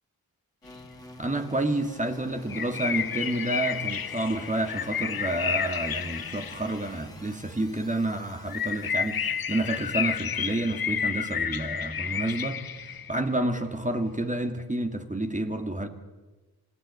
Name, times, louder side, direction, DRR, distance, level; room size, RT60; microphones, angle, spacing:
sound 1, 0.6-10.9, left 1 dB, 10° left, 3.5 m, -49 dB
voice 1, 1.2-12.6 13.1-15.9, right 1 dB, 20° right, 5 dB, 2.3 m, -29 dB
sound 2, 2.5-7.2 8.5-13.2, left 7 dB, 65° left, 0.9 m, -31 dB
28.5 x 15.5 x 9.7 m, 1.2 s
wide cardioid pair, 70°, 38 cm